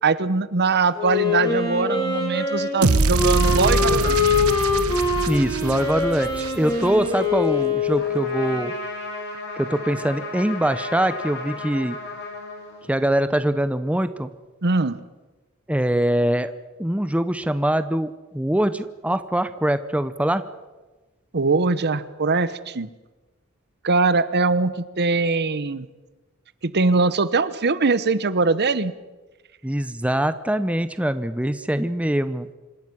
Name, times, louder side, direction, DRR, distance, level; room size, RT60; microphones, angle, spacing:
voice 1, 0.0-4.4 14.6-15.0 21.3-22.9 23.8-25.9 26.6-28.9, right 3 dB, 50° right, 15 dB, 1.0 m, -22 dB
Wind instrument woodwind instrument, 0.9-8.7, left 4 dB, 20° left, 5.3 m, -24 dB
sound 1, 2.8-7.1, right 3 dB, 75° right, 1.0 m, -24 dB
voice 2, 5.3-8.7 9.5-12.0 12.8-14.3 15.7-16.5 16.8-20.4 29.6-32.5, right 1 dB, 5° right, 12 dB, 0.7 m, -23 dB
Trumpet, 8.0-13.2, left 2 dB, 55° left, 6.4 m, -34 dB
26.5 x 12.5 x 9.8 m, 1.2 s
head